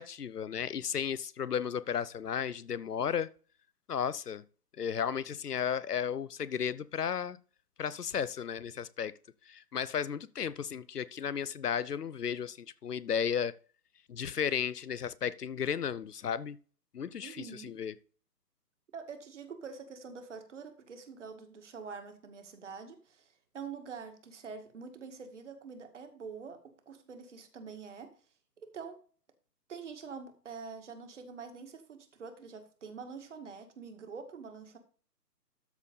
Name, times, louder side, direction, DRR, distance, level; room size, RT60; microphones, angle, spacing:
voice 1, 0.0-3.3 3.9-4.4 4.8-7.4 7.8-9.2 9.5-13.6 14.1-16.6 16.9-17.9, left 8 dB, 70° left, 0.8 m, -34 dB
voice 2, 17.2-17.7 18.9-28.1 28.6-29.0 29.7-34.8, right 5 dB, 45° right, 2.0 m, -46 dB
13.0 x 4.4 x 5.3 m
figure-of-eight pair, 140°, 49 cm